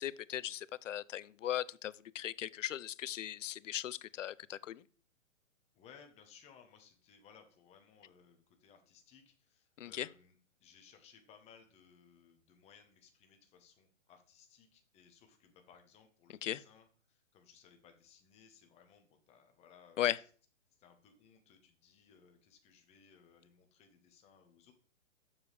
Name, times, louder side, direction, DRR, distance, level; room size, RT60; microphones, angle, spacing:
voice 1, 0.0-4.8 9.8-10.1 16.4-16.6 20.0-20.2, left 11 dB, 70° left, 0.5 m, -38 dB
voice 2, 5.7-20.1 20.8-24.7, left 7 dB, 15° left, 1.1 m, -62 dB
7.3 x 6.9 x 3.3 m
hypercardioid pair, 140°, 39 cm